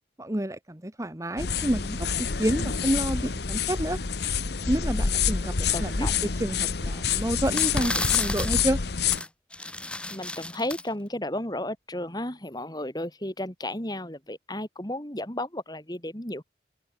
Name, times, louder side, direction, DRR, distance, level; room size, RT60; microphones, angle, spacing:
voice 1, 0.2-4.0 4.7-5.5 5.8-6.1 6.4-8.8, right 1 dB, 15° right, 1.2 m, -29 dB
sound 1, 1.4-9.2, left 6 dB, 60° left, 1.1 m, -27 dB
voice 2, 5.7-6.2 10.1-16.4, left 1 dB, 20° left, 3.3 m, -33 dB
sound 2, 7.1-7.2 7.5-8.6 9.1-9.3 9.5-10.8, left 2 dB, 5° left, 2.1 m, -32 dB
open air
head